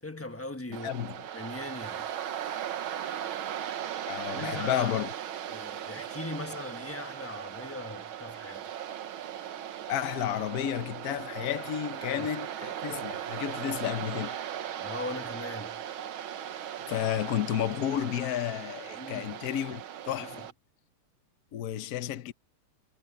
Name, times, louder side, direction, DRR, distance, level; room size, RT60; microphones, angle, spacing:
voice 1, 0.0-0.9 1.3-2.1 4.3-4.9 5.5-8.8 12.0-12.3 14.8-15.8 18.9-19.4 20.2-20.5, left 2 dB, 10° left, 0.7 m, -40 dB
Waves surf, 0.7-20.5, right 10 dB, 70° right, 1.8 m, -38 dB
voice 2, 0.8-1.2 4.1-5.1 9.9-14.3 16.9-20.4 21.5-22.3, left 11 dB, 60° left, 1.1 m, -32 dB
omnidirectional pair, 2.4 m